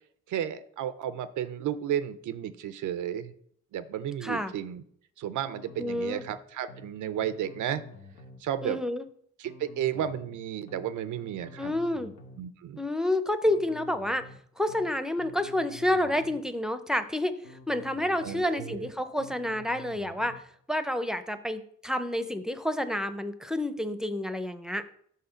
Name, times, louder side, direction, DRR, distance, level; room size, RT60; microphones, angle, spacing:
voice 1, 0.3-3.3 3.7-4.8 5.2-7.8 8.4-8.8 9.4-11.7 12.4-12.8 18.2-18.9, right 10 dB, 85° right, 12 dB, 0.5 m, -33 dB
voice 2, 4.2-4.5 5.8-6.2 8.6-9.1 11.6-12.1 12.8-14.3 14.6-17.3 17.7-20.4 20.7-24.8, left 1 dB, ahead, 10 dB, 0.6 m, -29 dB
sound 1, 5.4-6.4 6.7-6.9 7.2-8.4 9.4-10.4 10.7-10.9 11.2-12.4 13.4-14.4 14.7-14.9 15.2-16.4 17.4-18.4 18.7-18.9 19.2-20.4, left 2 dB, 80° left, 1.1 m, -49 dB
5.6 x 3.7 x 5.7 m, 0.64 s
cardioid pair, 65°, 29 cm